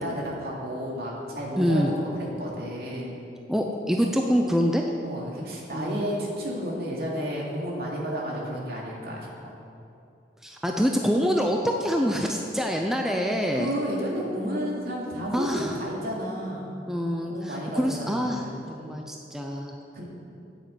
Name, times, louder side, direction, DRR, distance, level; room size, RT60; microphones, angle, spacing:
voice 1, 0.0-3.2 5.0-9.5 13.5-16.7 17.3-19.0 19.9-20.0, equal, 60° right, -3 dB, 2.8 m, -32 dB
voice 2, 1.6-1.9 3.5-4.9 5.7-6.0 10.4-13.7 15.3-15.7 16.9-19.7, equal, 5° right, 1 dB, 0.6 m, -25 dB
9.8 x 9.1 x 8.0 m, 2.7 s
head